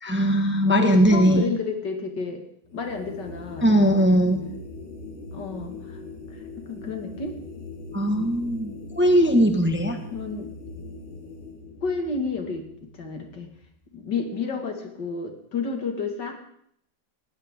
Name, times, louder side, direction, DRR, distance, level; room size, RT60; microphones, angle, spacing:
voice 1, 0.0-1.5 3.6-4.4 7.9-10.0, equal, 5° right, 4 dB, 1.3 m, -20 dB
voice 2, 0.8-2.4 2.7-3.8 5.3-6.0 6.3-7.3 10.1-10.5 11.8-13.5 13.9-16.3, left 4 dB, 65° left, 4 dB, 2.6 m, -31 dB
sound 1, 2.7-14.0, left 3 dB, 30° left, 1.4 m, -41 dB
19.5 x 15.5 x 3.7 m, 0.69 s
omnidirectional pair, 2.1 m